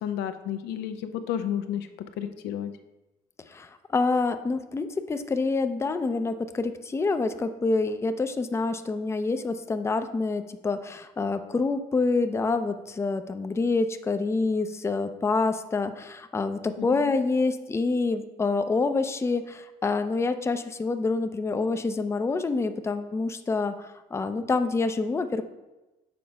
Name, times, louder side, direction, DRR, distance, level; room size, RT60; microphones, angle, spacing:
voice 1, 0.0-1.9 2.2-2.7 16.8-17.2, left 9 dB, 85° left, 8 dB, 0.6 m, -31 dB
voice 2, 3.5-25.4, left 3 dB, 15° left, 9 dB, 0.5 m, -27 dB
6.8 x 4.5 x 5.3 m, 1.0 s
cardioid pair, 110°, 17 cm